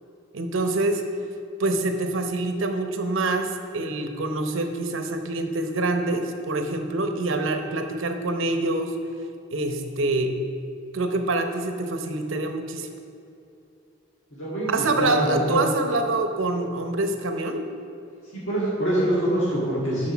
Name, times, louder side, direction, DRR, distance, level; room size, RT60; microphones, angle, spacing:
voice 1, 0.3-1.0 1.6-8.9 9.5-10.4 10.9-12.9 14.7-17.6, right 2 dB, 75° right, 5 dB, 0.8 m, -26 dB
voice 2, 14.3-15.6 18.3-20.1, equal, 65° left, -9 dB, 2.0 m, -25 dB
7.4 x 6.4 x 6.1 m, 2.6 s
head